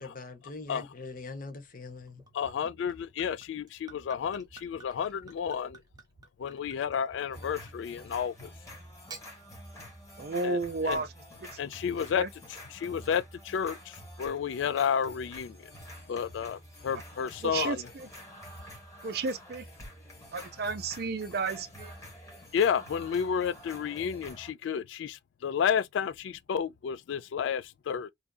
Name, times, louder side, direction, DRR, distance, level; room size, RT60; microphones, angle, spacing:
voice 1, 0.0-2.2, left 3 dB, 45° left, 0.7 m, -42 dB
Gurgling / Chink clink / Liquid, 2.1-8.2 8.9-9.3, right 4 dB, 20° right, 0.7 m, -52 dB
voice 2, 2.3-5.8 6.4-8.5 10.4-10.6 10.8-11.0 11.6-12.2 12.7-15.7 16.1-17.8 22.5-28.1, left 7 dB, 80° left, 0.3 m, -31 dB
sound 1, 7.3-24.5, equal, 15° left, 1.1 m, -48 dB
voice 3, 10.2-11.1 12.1-12.3 17.4-18.1 19.0-19.7 20.3-21.9, right 3 dB, 55° right, 0.5 m, -32 dB
2.7 x 2.4 x 2.2 m
head